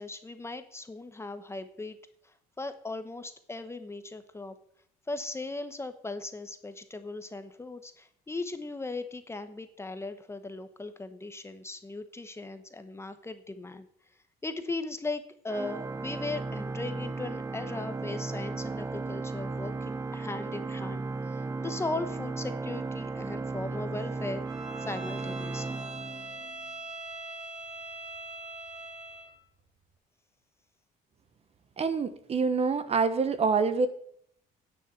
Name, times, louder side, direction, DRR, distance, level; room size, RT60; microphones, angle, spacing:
voice 1, 0.0-2.0 2.2-4.6 5.1-13.9 14.4-24.4 24.8-25.8, left 2 dB, 15° left, 10 dB, 0.9 m, -38 dB
Organ, 15.5-26.6, right 3 dB, 20° right, 0.4 m, -35 dB
Bowed string instrument, 24.4-29.3, right 2 dB, 85° right, 4.2 m, -42 dB
voice 2, 31.8-33.9, right 5 dB, 35° right, 12 dB, 1.1 m, -26 dB
10.0 x 6.4 x 7.8 m, 0.66 s
cardioid pair, 110°, 17 cm